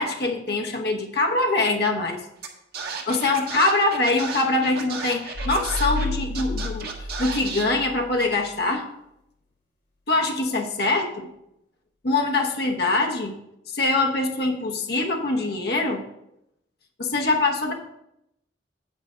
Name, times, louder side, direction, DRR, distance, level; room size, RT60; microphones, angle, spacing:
voice 1, 0.0-2.2 3.1-8.8 10.1-11.3 12.0-13.3 13.7-16.0 17.0-17.7, left 2 dB, 60° left, 2 dB, 0.9 m, -23 dB
Scratching (performance technique), 2.4-2.5 2.7-6.1 6.3-7.6, right 5 dB, 55° right, 1.6 m, -33 dB
sound 1, 5.3-8.2, left 2 dB, 75° left, 2.9 m, -31 dB
8.8 x 4.9 x 5.5 m, 0.83 s
head